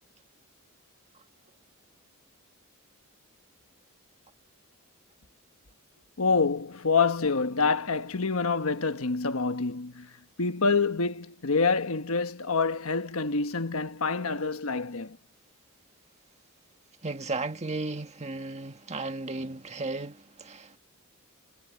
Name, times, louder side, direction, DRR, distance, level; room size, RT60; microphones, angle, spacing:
voice 1, 6.2-15.2, left 4 dB, 75° left, 1.2 m, -27 dB
voice 2, 17.0-20.8, right 3 dB, 30° right, 1.7 m, -35 dB
head